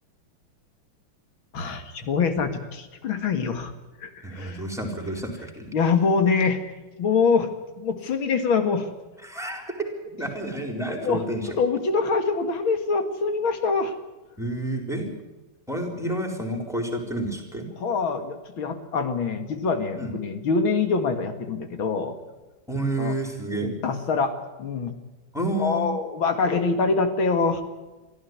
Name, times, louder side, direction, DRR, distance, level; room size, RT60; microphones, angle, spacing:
voice 1, 1.5-3.7 4.0-4.6 5.7-6.6 7.0-7.5 7.8-8.9 11.0-11.2 11.6-13.9 17.8-22.2 23.0-23.1 23.5-24.3 24.6-24.9 25.6-27.6, left 4 dB, 90° left, 7 dB, 2.8 m, -24 dB
voice 2, 4.2-5.7 9.2-9.9 10.2-11.6 14.4-15.1 15.7-17.7 20.0-20.1 22.7-23.7 25.3-25.9, right 1 dB, ahead, 4 dB, 4.1 m, -29 dB
24.0 x 14.0 x 9.6 m, 1.1 s
omnidirectional pair, 2.2 m